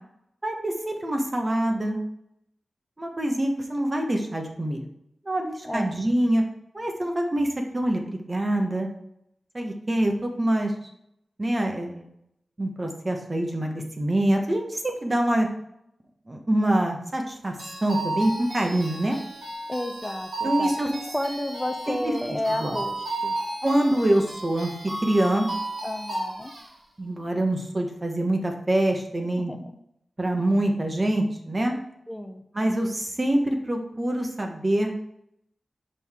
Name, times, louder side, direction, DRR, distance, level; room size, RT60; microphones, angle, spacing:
voice 1, 0.4-2.0 3.0-4.9 5.2-6.4 6.7-7.5 7.7-8.9 9.5-10.7 11.4-12.0 12.6-15.5 16.3-17.5 17.8-19.2 20.4-20.9 21.9-22.8 23.6-25.5 27.0-29.5 30.2-31.7 32.5-34.9, right 1 dB, 30° right, 3 dB, 1.2 m, -25 dB
sound 1, 17.6-26.7, right 2 dB, 75° right, 2.5 m, -33 dB
voice 2, 19.7-23.3 25.8-26.5 29.4-29.7 32.1-32.4, left 1 dB, 15° left, 5 dB, 0.7 m, -31 dB
6.3 x 5.4 x 3.6 m, 0.80 s
wide cardioid pair, 80°, 0 cm